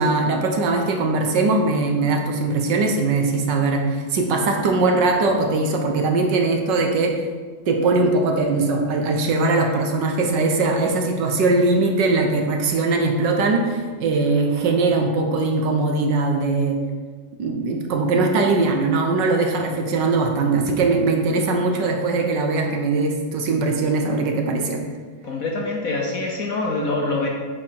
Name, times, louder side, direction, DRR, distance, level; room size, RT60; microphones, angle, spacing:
voice 1, 0.0-7.2 7.7-16.8 17.4-24.8, right 3 dB, 65° right, 3 dB, 1.5 m, -20 dB
voice 2, 25.2-27.3, left 2 dB, 55° left, 0 dB, 1.0 m, -25 dB
9.0 x 4.8 x 4.6 m, 1.5 s
omnidirectional pair, 2.2 m